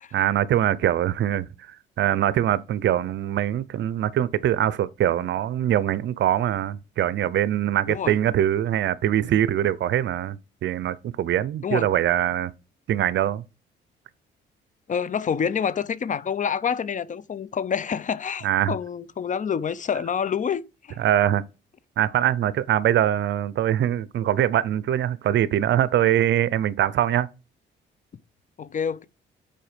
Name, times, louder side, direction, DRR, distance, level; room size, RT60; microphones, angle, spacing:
voice 1, 0.1-12.5 12.9-13.4 18.4-18.8 21.0-21.5 22.0-27.3, right 11 dB, 65° right, 0.6 m, -23 dB
voice 2, 7.9-8.2 11.6-11.9 14.9-21.0 28.6-29.0, left 7 dB, 40° left, 0.6 m, -27 dB
7.6 x 4.6 x 5.1 m
cardioid pair, 90°, 20 cm